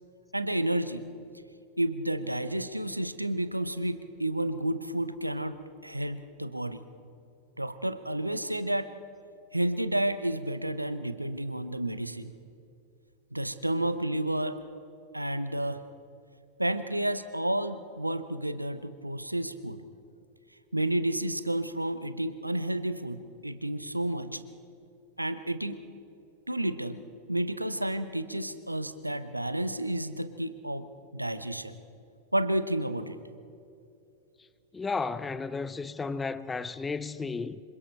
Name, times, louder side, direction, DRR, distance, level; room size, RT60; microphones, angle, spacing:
voice 1, 0.3-1.1 1.8-6.8 7.6-8.9 9.5-12.3 13.3-14.6 15.1-15.8 16.6-19.8 20.7-24.4 25.2-25.8 26.5-27.0 27.3-30.9 31.1-31.8 32.3-33.2, right 1 dB, 85° right, 0.9 m, -31 dB
voice 2, 34.7-37.6, left 4 dB, 15° left, 0.7 m, -33 dB
26.5 x 24.5 x 4.4 m
figure-of-eight pair, 90°, 0 cm